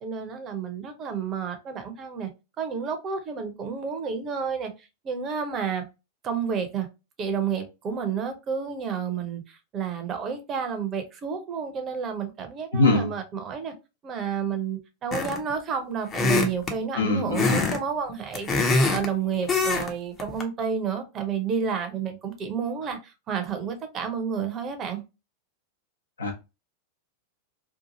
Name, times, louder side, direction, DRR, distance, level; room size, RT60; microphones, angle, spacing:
voice 1, 0.0-2.3 2.6-5.8 6.2-6.9 7.2-13.7 14.0-25.0, right 6 dB, 30° right, 0.6 m, -30 dB
voice 2, 12.7-13.1 16.9-17.6 26.2-26.3, left 2 dB, 75° left, 0.8 m, -23 dB
sound 1, 15.1-15.5 16.1-16.8 17.3-17.8 18.1-19.1 19.5-19.9 20.2-20.4, left 3 dB, 25° left, 0.6 m, -23 dB
2.7 x 2.4 x 2.7 m
figure-of-eight pair, 90°, 0 cm